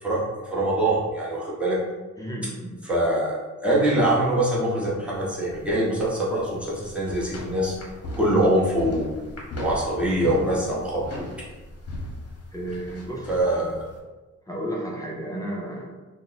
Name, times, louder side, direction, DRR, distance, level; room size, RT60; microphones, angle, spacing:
voice 1, 0.0-1.8 2.8-7.7 8.1-9.2 9.6-11.2 13.3-13.8, right 1 dB, 5° right, -7 dB, 0.8 m, -24 dB
voice 2, 2.2-2.8 12.5-13.7 14.5-15.9, right 1 dB, 10° left, -4 dB, 0.4 m, -33 dB
sound 1, 5.1-14.0, left 1 dB, 50° left, 0.8 m, -37 dB
3.4 x 2.1 x 3.9 m, 1.2 s
wide cardioid pair, 170°, 30 cm